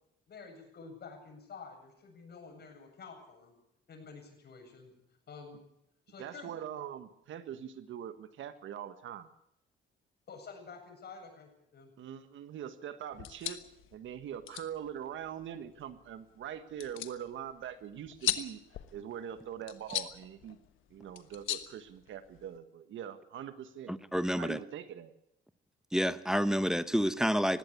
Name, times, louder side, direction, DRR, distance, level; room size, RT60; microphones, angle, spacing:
voice 1, 0.3-3.6 3.9-4.9 5.3-5.6 6.1-6.5 10.3-11.9, left 5 dB, 55° left, 4 dB, 7.9 m, -49 dB
voice 2, 6.2-9.3 12.0-13.6 13.9-18.6 18.9-20.6 20.9-24.0 24.4-25.1, right 9 dB, 75° right, 11 dB, 1.6 m, -43 dB
sound 1, 13.1-22.6, left 13 dB, 90° left, 1.3 m, -41 dB
voice 3, 23.9-24.6 25.9-27.6, equal, 5° right, 12 dB, 1.0 m, -29 dB
19.5 x 16.0 x 8.5 m, 0.77 s
cardioid pair, 90°, 20 cm